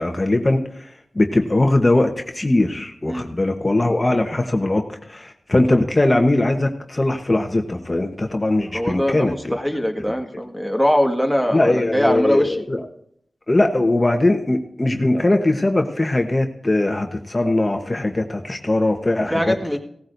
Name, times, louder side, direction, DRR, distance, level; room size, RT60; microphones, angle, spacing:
voice 1, 0.0-9.3 11.5-12.9 13.5-19.5, left 2 dB, 30° left, 4 dB, 1.1 m, -20 dB
voice 2, 8.6-12.6 19.1-19.8, equal, 5° right, 3 dB, 1.7 m, -22 dB
17.0 x 14.5 x 2.7 m, 0.69 s
wide cardioid pair, 60°, 0 cm